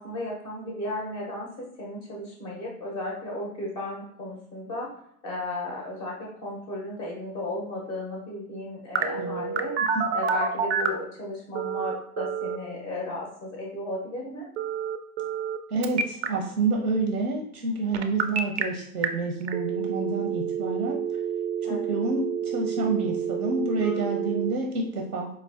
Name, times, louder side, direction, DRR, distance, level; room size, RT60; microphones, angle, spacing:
voice 1, 0.0-4.9 5.2-9.7 10.1-14.5 21.6-21.9 23.8-24.5, left 1 dB, 10° left, -2 dB, 0.4 m, -35 dB
Telephone, 8.9-11.0 11.5-12.6 14.6-15.6 15.8-16.3 17.9-18.6 19.0-19.1 19.5-24.5, right 7 dB, 50° right, 0.4 m, -28 dB
voice 2, 15.7-21.0 21.7-25.3, right 3 dB, 90° right, 1 dB, 0.8 m, -28 dB
4.5 x 2.3 x 2.3 m, 0.68 s
hypercardioid pair, 115°, 45 cm